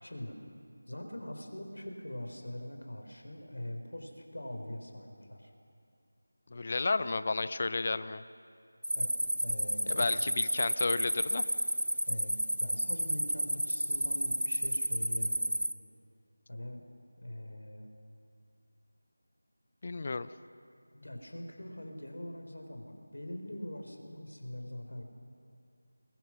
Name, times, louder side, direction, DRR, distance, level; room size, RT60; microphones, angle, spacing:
voice 1, 0.0-0.4 0.9-5.5 8.9-9.1 9.4-10.2 12.1-15.6 16.5-16.8 17.2-17.9 20.9-25.0, left 1 dB, 70° left, 4 dB, 4.1 m, -42 dB
voice 2, 6.5-8.2 9.9-11.4 19.8-20.3, left 3 dB, 35° left, 14 dB, 0.7 m, -32 dB
sound 1, 8.8-15.7, right 1 dB, 80° right, 1.2 m, -31 dB
28.5 x 21.5 x 6.2 m, 2.4 s
figure-of-eight pair, 165°, 0 cm